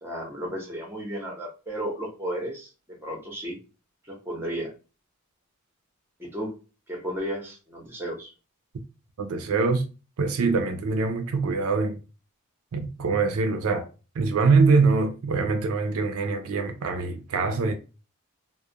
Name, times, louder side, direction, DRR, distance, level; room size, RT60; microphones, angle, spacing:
voice 1, 0.0-2.7 3.0-3.6 4.1-4.7 6.2-6.5 6.9-8.3, equal, 10° right, 0.7 m, -33 dB
voice 2, 9.2-9.8 10.2-12.0 12.7-13.9 14.2-17.7, right 4 dB, 70° right, 0.4 m, -23 dB
2.3 x 2.0 x 2.7 m
head